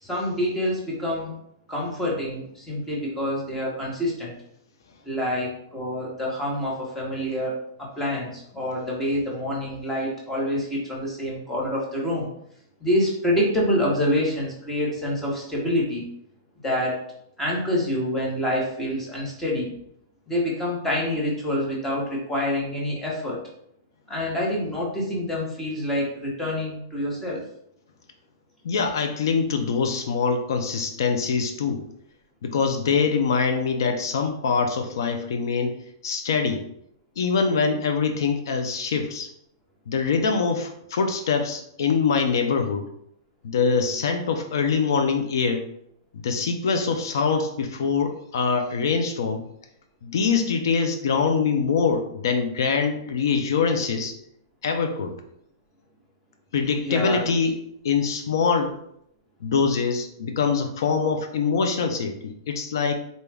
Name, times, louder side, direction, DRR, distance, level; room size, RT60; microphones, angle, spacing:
voice 1, 0.0-1.3 1.7-4.3 5.0-12.3 12.8-16.1 16.6-17.0 17.4-19.7 20.3-23.4 24.1-27.4 56.8-57.2, left 1 dB, 10° left, -4 dB, 0.9 m, -27 dB
voice 2, 28.6-31.8 32.4-35.8 36.0-36.6 37.2-39.3 39.9-42.9 43.4-45.7 46.1-49.5 50.0-54.1 54.6-55.2 56.5-57.5 57.8-58.7 59.4-62.9, left 5 dB, 75° left, 6 dB, 0.5 m, -24 dB
4.0 x 2.3 x 3.3 m, 0.73 s
hypercardioid pair, 165°, 2 cm